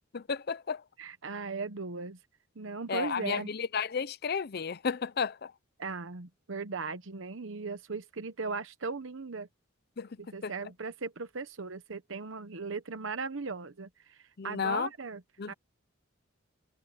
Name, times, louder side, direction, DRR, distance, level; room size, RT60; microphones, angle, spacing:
voice 1, 0.1-0.8 2.9-5.5 10.0-10.1 10.4-10.5 14.4-14.9 15.4-15.5, left 6 dB, 50° left, 0.6 m, -32 dB
voice 2, 1.0-2.2 2.6-3.5 5.8-9.5 10.2-15.2 15.5-15.6, right 4 dB, 70° right, 1.0 m, -38 dB
head